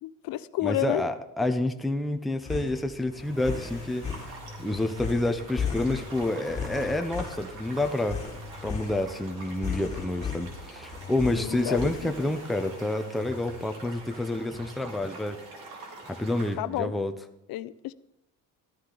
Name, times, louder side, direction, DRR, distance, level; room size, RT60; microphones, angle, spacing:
voice 1, 0.0-1.1 11.2-12.3 16.6-16.9 17.5-17.9, left 15 dB, 75° left, 15 dB, 0.6 m, -31 dB
voice 2, 0.6-4.2 4.6-8.2 8.6-15.4 16.1-17.1, left 1 dB, ahead, 6 dB, 0.5 m, -28 dB
sound 1, 2.4-12.4, left 6 dB, 20° left, 2.8 m, -36 dB
Accelerating revving vroom, 2.8-14.8 16.1-16.2, equal, 35° right, 3.1 m, -47 dB
sound 2, 4.0-16.5, right 3 dB, 85° right, 3.3 m, -45 dB
14.5 x 13.0 x 3.8 m, 0.85 s
cardioid pair, 170°, 36 cm